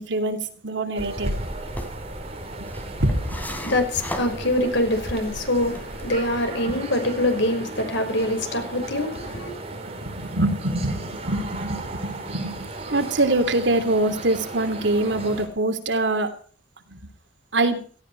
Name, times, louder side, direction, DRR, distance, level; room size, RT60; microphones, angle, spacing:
voice 1, 0.0-1.5 3.0-3.2 10.0-16.3 16.9-17.0 17.5-17.9, right 2 dB, 70° right, 3.0 m, -24 dB
sound 1, 0.9-15.5, right 2 dB, 35° right, 4.8 m, -35 dB
sound 2, 1.5-6.5, equal, 10° left, 3.3 m, -35 dB
voice 2, 3.6-9.5, left 1 dB, 70° left, 5.7 m, -24 dB
18.0 x 16.0 x 4.7 m
head